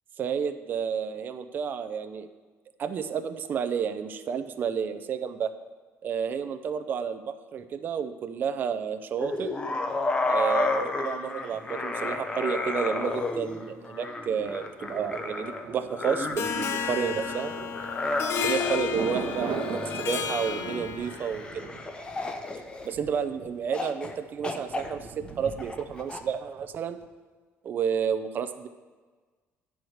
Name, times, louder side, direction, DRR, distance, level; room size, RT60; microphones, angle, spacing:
voice 1, 0.2-2.3 2.8-5.5 6.0-9.5 10.3-17.5 18.4-21.6 22.9-27.0 27.6-28.7, right 7 dB, 40° right, 10 dB, 0.5 m, -31 dB
sound 1, 9.2-23.2 23.7-24.1 24.4-26.2, left 2 dB, 20° left, 0.6 m, -32 dB
Thunder, 14.8-26.7 27.0-27.1, right 5 dB, 60° right, 1.0 m, -41 dB
Harp, 16.4-21.4, left 7 dB, 55° left, 0.6 m, -32 dB
9.8 x 4.6 x 6.4 m, 1.4 s
cardioid pair, 160°, 5 cm